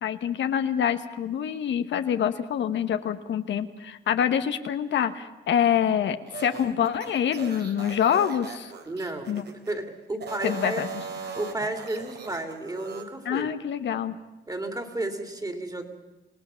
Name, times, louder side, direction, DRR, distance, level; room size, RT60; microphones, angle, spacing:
voice 1, 0.0-8.7 9.3-9.4 10.4-10.9 13.2-14.2, left 9 dB, 65° left, 9 dB, 1.1 m, -26 dB
sound 1, 6.3-9.7 10.1-13.1, right 5 dB, 60° right, 3.3 m, -39 dB
voice 2, 8.9-9.4 9.7-10.9 11.2-13.5 14.5-15.9, right 2 dB, 20° right, 6 dB, 2.9 m, -32 dB
26.5 x 17.5 x 7.0 m, 1.0 s
cardioid pair, 90°, 20 cm